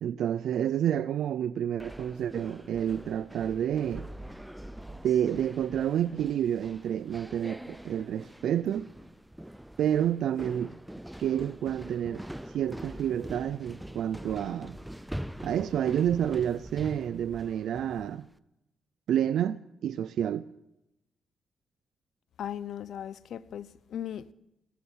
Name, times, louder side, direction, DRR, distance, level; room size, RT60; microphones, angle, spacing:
voice 1, 0.0-4.1 5.0-8.9 9.8-10.7 11.2-12.2 12.5-14.8 15.4-18.3 19.1-20.4, right 10 dB, 80° right, 0.5 m, -29 dB
sound 1, 1.8-18.3, equal, 5° right, 0.5 m, -44 dB
voice 2, 22.4-24.3, left 10 dB, 75° left, 0.7 m, -38 dB
17.5 x 13.0 x 6.3 m
cardioid pair, 115°, 0 cm